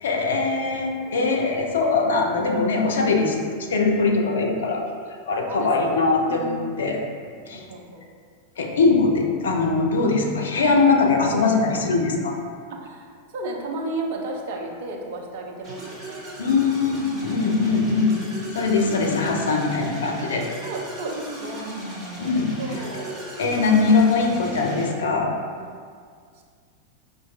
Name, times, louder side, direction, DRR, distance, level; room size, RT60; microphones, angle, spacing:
voice 1, 0.0-3.4 3.7-4.9 5.2-7.0 7.5-7.6 8.6-12.4 16.4-18.2 18.5-20.5 22.2-22.5 23.4-25.3, left 4 dB, 65° left, 2 dB, 0.4 m, -21 dB
voice 2, 1.0-1.3 5.5-7.0 7.5-8.0 12.7-16.4 17.5-18.0 20.6-21.7 22.6-23.3 26.4-26.5, right 2 dB, 50° right, 0 dB, 0.5 m, -34 dB
sound 1, 15.6-24.9, right 1 dB, 20° right, 1.1 m, -35 dB
5.2 x 2.5 x 2.3 m, 2.1 s
figure-of-eight pair, 90°, 0 cm